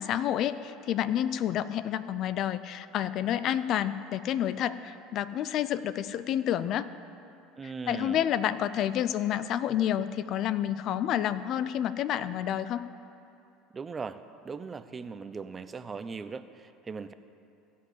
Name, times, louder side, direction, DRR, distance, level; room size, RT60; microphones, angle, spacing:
voice 1, 0.0-6.9 7.9-12.8, left 10 dB, 55° left, 15 dB, 0.5 m, -29 dB
voice 2, 7.6-8.2 13.7-17.1, right 5 dB, 25° right, 12 dB, 0.6 m, -39 dB
15.5 x 5.7 x 8.5 m, 2.7 s
hypercardioid pair, 80°, 0 cm